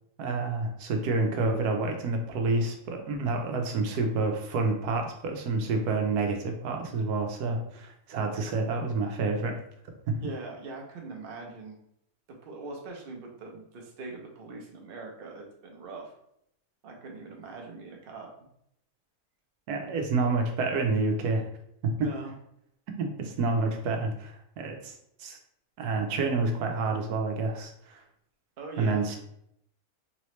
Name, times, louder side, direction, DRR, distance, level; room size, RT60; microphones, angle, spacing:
voice 1, 0.2-9.5 19.7-21.5 23.0-24.9 25.2-25.4 25.8-28.0 28.8-29.2, right 3 dB, 90° right, 3 dB, 1.2 m, -28 dB
voice 2, 10.2-11.8 12.4-16.1 16.8-18.3 22.0-22.3 28.6-29.1, right 3 dB, 45° right, 1 dB, 0.9 m, -42 dB
3.9 x 3.1 x 3.0 m, 0.74 s
omnidirectional pair, 1.6 m